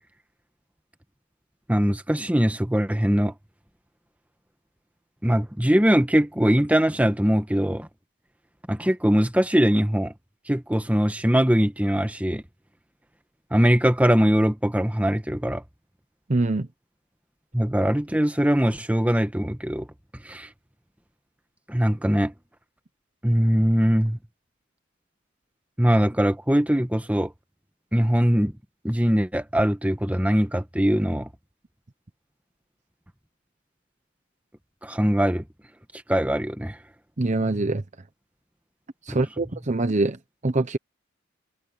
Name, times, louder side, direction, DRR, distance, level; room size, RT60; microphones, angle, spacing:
voice 1, 1.7-3.3 5.2-7.9 8.7-10.1 10.5-12.4 13.5-15.6 17.5-19.9 20.2-20.5 21.7-22.3 23.2-24.2 25.8-27.3 27.9-28.5 28.8-31.3 34.8-35.4 36.1-36.8 39.1-39.2, equal, 5° right, 1.3 m, -21 dB
voice 2, 16.3-16.7 37.2-37.8 39.1-40.8, right 2 dB, 35° right, 0.9 m, -24 dB
head